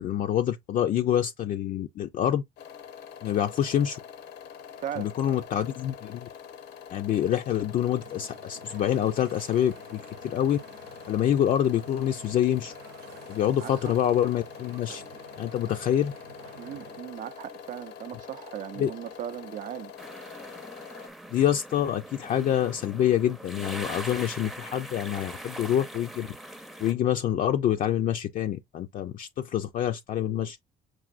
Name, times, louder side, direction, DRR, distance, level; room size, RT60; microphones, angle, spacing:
voice 1, 0.0-2.4 3.2-4.0 5.0-6.3 6.9-10.6 11.1-12.7 13.3-15.0 15.4-16.1 18.8-18.9 21.3-26.3 26.8-30.6, left 10 dB, 50° left, 0.4 m, -26 dB
sound 1, 2.6-21.1, left 8 dB, 80° left, 0.8 m, -45 dB
voice 2, 4.8-5.4 13.6-14.0 16.6-19.9, right 11 dB, 50° right, 0.4 m, -38 dB
sound 2, 8.0-17.0, right 8 dB, 80° right, 0.8 m, -50 dB
sound 3, 20.0-26.9, right 1 dB, ahead, 0.5 m, -41 dB
6.1 x 2.6 x 2.5 m
cardioid pair, 110°, 17 cm